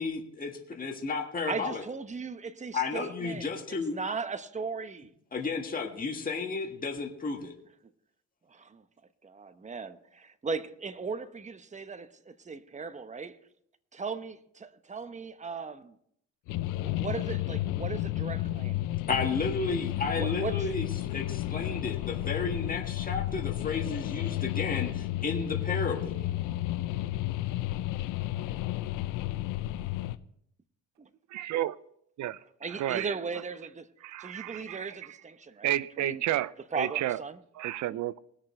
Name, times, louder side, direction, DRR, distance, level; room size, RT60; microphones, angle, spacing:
voice 1, 0.0-1.8 2.7-4.0 5.3-7.5 19.1-26.3, left 4 dB, 30° left, 1.7 m, -33 dB
voice 2, 1.5-5.1 8.5-8.8 9.2-13.4 13.9-16.0 16.6-18.8 20.2-20.7 32.6-33.9 34.2-36.2 36.7-37.4 37.9-38.0, right 5 dB, 25° right, 0.9 m, -38 dB
sound 1, 16.5-30.2, left 15 dB, 90° left, 0.6 m, -32 dB
voice 3, 31.3-31.7 32.2-32.4 32.7-33.1 34.0-35.0 35.6-37.2 37.6-38.2, right 13 dB, 70° right, 0.6 m, -31 dB
20.0 x 6.7 x 4.4 m
cardioid pair, 90°, 30 cm